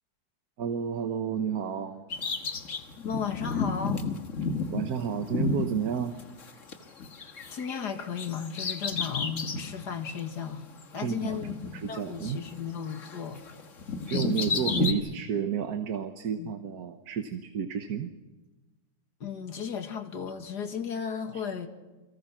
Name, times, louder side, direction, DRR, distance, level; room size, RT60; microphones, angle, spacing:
voice 1, 0.6-2.1 4.7-6.2 11.0-11.4 11.7-12.4 14.1-18.1 21.3-21.4, right 7 dB, 65° right, 1.5 m, -31 dB
Bird vocalization bird call bird song, 2.1-6.7 7.0-9.7 10.2-10.3 11.2-12.6 12.9-14.9, left 4 dB, 50° left, 1.8 m, -32 dB
voice 2, 3.0-4.1 7.5-10.7 10.9-13.4 16.4-16.5 19.2-21.7, left 7 dB, 80° left, 2.3 m, -34 dB
29.0 x 23.0 x 6.1 m
omnidirectional pair, 1.7 m